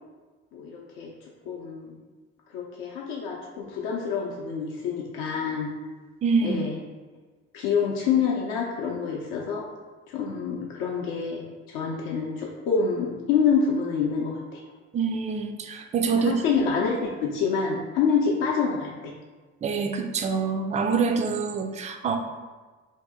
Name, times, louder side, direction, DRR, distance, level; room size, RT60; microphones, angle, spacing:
voice 1, 0.5-1.1 1.5-1.9 2.5-5.7 6.4-6.7 7.5-9.6 10.1-14.6 16.2-19.1, left 6 dB, 60° left, -2 dB, 0.6 m, -27 dB
voice 2, 6.2-6.6 14.9-16.3 19.6-22.2, right 5 dB, 20° right, 5 dB, 0.3 m, -25 dB
2.7 x 2.7 x 3.5 m, 1.3 s
hypercardioid pair, 50°, 40 cm